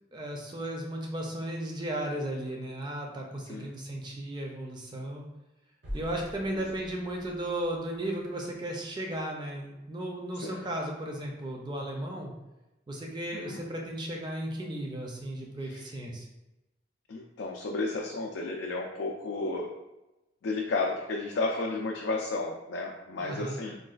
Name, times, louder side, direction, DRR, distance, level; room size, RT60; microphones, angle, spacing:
voice 1, 0.1-5.3 5.9-12.3 12.9-16.3 23.2-23.6, right 1 dB, 25° right, 0 dB, 0.4 m, -35 dB
sound 1, 5.8-8.8, equal, 90° right, 0.8 m, -44 dB
voice 2, 17.1-19.7 20.4-23.8, left 3 dB, 85° left, 0 dB, 0.4 m, -32 dB
3.8 x 2.3 x 2.4 m, 0.99 s
head